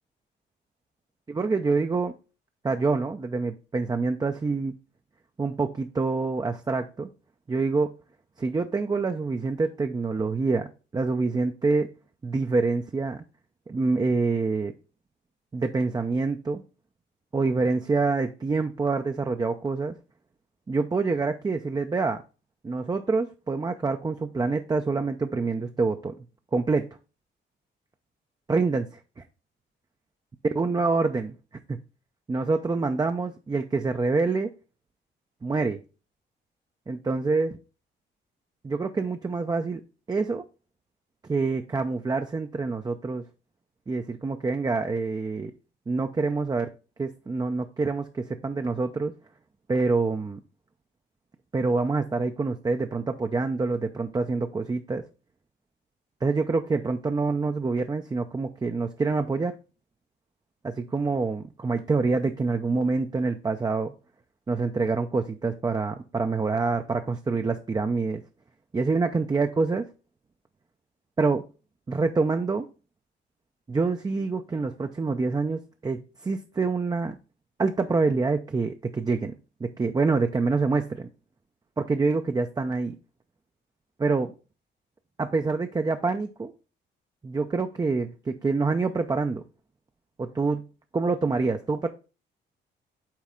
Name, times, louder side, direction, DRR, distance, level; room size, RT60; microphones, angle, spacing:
voice 1, 1.3-2.1 2.6-4.7 5.4-7.1 7.5-7.9 8.4-10.7 10.9-11.9 12.2-13.2 13.7-14.7 15.5-16.6 17.3-19.9 20.7-22.2 22.6-26.1 26.5-26.9 28.5-29.2 30.6-31.4 31.7-31.8 32.3-34.5 35.4-35.8 36.9-37.6 38.6-39.8 40.1-40.4 41.3-43.2 43.9-45.5 45.9-46.7 47.0-49.1 49.7-50.4 51.5-55.0 56.2-59.5 60.6-63.9 64.5-68.2 68.7-69.8 71.2-71.4 71.9-72.7 73.7-77.2 77.6-79.4 79.6-81.1 81.8-82.9 84.0-84.3 85.2-86.5 87.2-89.4 90.2-90.6 90.9-91.9, right 4 dB, 20° right, 6 dB, 0.5 m, -26 dB
7.4 x 4.1 x 3.6 m, 0.33 s
cardioid pair, 90°, 20 cm